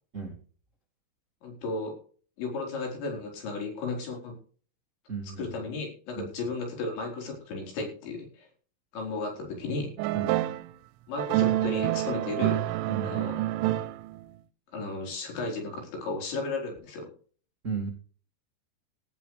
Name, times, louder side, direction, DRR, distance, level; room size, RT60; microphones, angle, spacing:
voice 1, 1.4-2.0 2.4-4.3 5.4-8.5 8.9-10.0 11.1-12.6 13.0-13.4 14.7-17.1, left 3 dB, 65° left, 1 dB, 6.6 m, -34 dB
voice 2, 5.1-5.5 6.1-6.3 10.1-10.3 12.9-13.2 17.6-17.9, right 5 dB, 60° right, 1 dB, 0.7 m, -34 dB
sound 1, 10.0-10.7 11.2-14.2, right 15 dB, 85° right, 3.2 m, -27 dB
17.5 x 12.0 x 3.4 m, 0.42 s
omnidirectional pair, 5.8 m